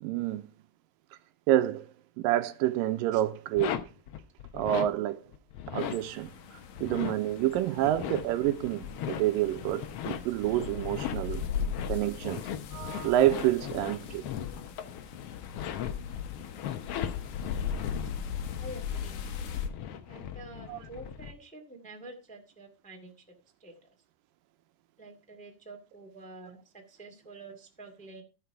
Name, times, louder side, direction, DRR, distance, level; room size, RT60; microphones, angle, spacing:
voice 1, 0.0-0.5 1.5-1.9 2.2-3.8 4.5-5.2 5.7-6.3 6.8-11.4 11.9-12.4 12.7-14.2 20.7-20.8, right 13 dB, 80° right, 2.4 m, -28 dB
sound 1, 3.6-4.9 5.3-6.0 6.6-21.3, left 9 dB, 85° left, 1.3 m, -38 dB
sound 2, 5.8-19.7, left 7 dB, 70° left, 2.5 m, -39 dB
voice 2, 18.6-19.2 20.1-23.7 25.0-28.2, right 2 dB, 5° left, 1.2 m, -48 dB
14.5 x 6.0 x 4.7 m
omnidirectional pair, 4.0 m